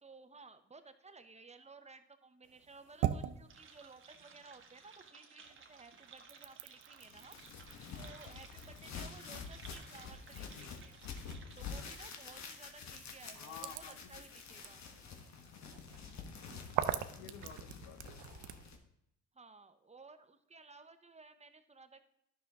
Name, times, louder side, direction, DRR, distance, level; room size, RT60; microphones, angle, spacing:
voice 1, 0.0-7.4 8.0-11.0 11.6-14.9 19.3-22.0, right 4 dB, 20° right, 9 dB, 0.7 m, -56 dB
sound 1, 2.4-5.1 5.4-18.7, right 11 dB, 80° right, 0.6 m, -44 dB
sound 2, 3.5-12.1, right 5 dB, 40° right, 1.3 m, -58 dB
sound 3, 7.0-18.8, left 5 dB, 65° left, 1.3 m, -48 dB
voice 2, 13.3-14.1 17.1-18.2, left 8 dB, 85° left, 9 dB, 0.9 m, -51 dB
11.0 x 6.1 x 3.6 m, 0.79 s
cardioid pair, 90°, 30 cm